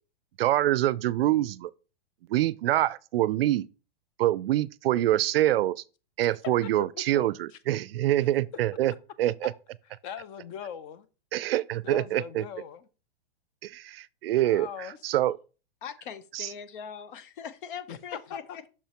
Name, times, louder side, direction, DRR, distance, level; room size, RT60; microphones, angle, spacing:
voice 1, 0.4-1.7 2.3-3.7 4.2-5.8 6.2-8.9 9.2-9.5 11.3-12.4 13.6-14.7 15.0-15.4 16.3-16.5, right 14 dB, 75° right, 0.4 m, -25 dB
voice 2, 7.1-7.6 8.2-8.3 10.0-11.1 11.8-12.9 14.4-15.0 17.9-18.7, left 8 dB, 25° left, 0.4 m, -40 dB
voice 3, 15.8-18.4, left 7 dB, 60° left, 0.8 m, -41 dB
6.4 x 5.7 x 2.9 m
hypercardioid pair, 155°, 30 cm